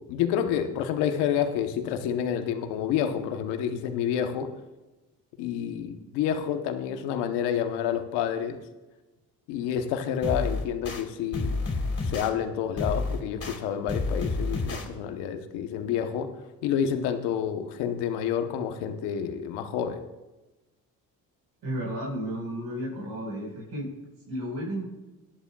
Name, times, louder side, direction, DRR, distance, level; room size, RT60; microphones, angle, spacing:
voice 1, 0.0-4.5 5.4-8.6 9.5-11.5 12.0-16.3 16.6-20.0, left 8 dB, 90° left, 7 dB, 1.0 m, -29 dB
sound 1, 10.2-11.0 11.3-12.3 12.8-13.6 13.9-14.8, left 3 dB, 35° left, 3.2 m, -29 dB
voice 2, 21.6-23.9 24.3-24.9, equal, 75° right, -4 dB, 4.6 m, -33 dB
18.5 x 11.0 x 2.3 m, 1.1 s
supercardioid pair, 50°, 39 cm